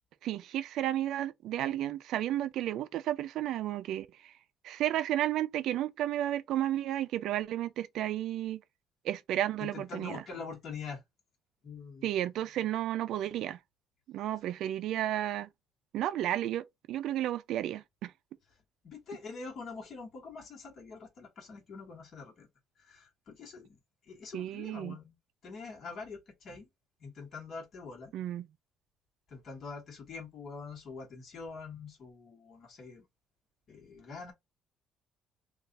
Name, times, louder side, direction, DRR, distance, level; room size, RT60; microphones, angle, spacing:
voice 1, 0.2-4.3 4.6-8.6 9.0-10.2 12.0-13.6 14.1-15.5 15.9-18.1 24.3-25.0 28.1-28.5, right 12 dB, 65° right, 0.3 m, -32 dB
voice 2, 9.6-11.0 11.6-12.1 18.8-22.5 22.8-23.8 24.0-25.1 25.4-26.7 27.0-28.1 29.3-33.1 33.7-34.3, left 4 dB, 40° left, 1.2 m, -45 dB
3.3 x 2.4 x 3.8 m
cardioid pair, 180°, 0 cm